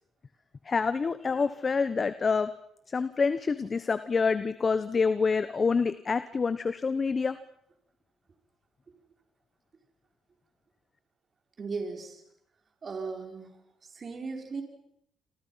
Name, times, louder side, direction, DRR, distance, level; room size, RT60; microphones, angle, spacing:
voice 1, 0.6-2.5 2.9-7.4, left 5 dB, 35° left, 13 dB, 1.1 m, -27 dB
voice 2, 11.6-12.2 12.8-13.5 13.9-14.6, right 4 dB, 40° right, 4 dB, 5.0 m, -36 dB
28.0 x 26.5 x 5.8 m, 0.73 s
cardioid pair, 90°, 0 cm